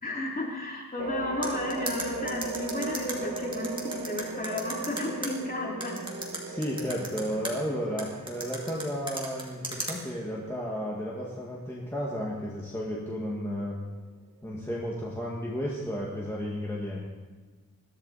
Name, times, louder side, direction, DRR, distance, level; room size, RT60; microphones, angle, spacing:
voice 1, 0.0-6.0, left 1 dB, 25° left, -2 dB, 3.0 m, -33 dB
sound 1, 1.0-13.8, right 3 dB, 45° right, 1.5 m, -39 dB
sound 2, 1.4-5.3 5.8-7.5 8.0-9.9, right 2 dB, 15° right, 2.2 m, -35 dB
voice 2, 6.5-13.8 14.4-17.1, equal, 5° left, -5 dB, 1.9 m, -33 dB
21.0 x 14.0 x 4.2 m, 1.3 s
wide cardioid pair, 160°, 36 cm